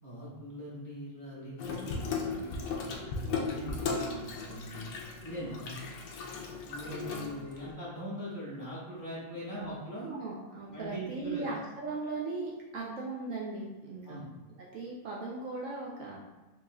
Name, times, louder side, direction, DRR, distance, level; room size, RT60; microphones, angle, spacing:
voice 1, 0.0-2.5 2.8-4.9 5.2-5.9 6.7-10.1 10.7-11.4 14.0-14.3, equal, 15° right, -8 dB, 0.7 m, -41 dB
Water tap faucet / Sink (filling or washing), 1.6-7.7, left 4 dB, 85° left, 1.2 m, -36 dB
voice 2, 10.0-14.2 14.6-16.2, right 3 dB, 70° right, -4 dB, 0.7 m, -38 dB
4.7 x 2.7 x 2.3 m, 1.1 s
omnidirectional pair, 1.8 m